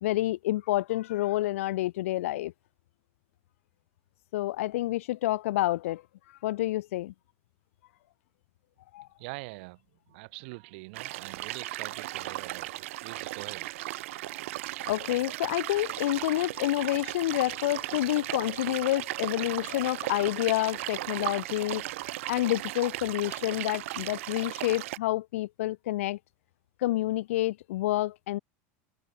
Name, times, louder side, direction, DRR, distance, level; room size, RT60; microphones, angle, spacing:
voice 1, 0.0-2.5 4.3-6.0 6.4-7.1 8.9-9.1 14.8-21.8 22.3-26.2 26.8-28.4, left 16 dB, 90° left, 1.0 m, -28 dB
voice 2, 9.2-9.8 10.1-13.7, right 27 dB, 50° right, 1.2 m, -44 dB
sound 1, 10.9-25.0, right 17 dB, 75° right, 0.6 m, -36 dB
supercardioid pair, 175°, 7 cm